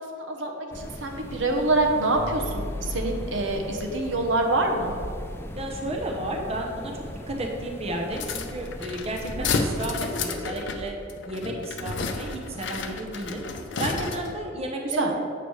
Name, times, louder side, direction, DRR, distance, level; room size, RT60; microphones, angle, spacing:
voice 1, 0.0-4.9 9.2-9.5 15.0-15.1, right 2 dB, 70° right, 2 dB, 0.8 m, -26 dB
sound 1, 0.7-9.9, left 1 dB, 10° left, 0.3 m, -39 dB
sound 2, 2.1-3.7 9.3-12.4, left 1 dB, 30° left, 0.8 m, -37 dB
voice 2, 5.6-11.0 11.3-13.4 13.8-15.1, right 1 dB, 30° right, 1 dB, 0.7 m, -32 dB
sound 3, 8.1-14.5, left 4 dB, 65° left, 0.6 m, -31 dB
7.7 x 6.8 x 3.1 m, 2.4 s
head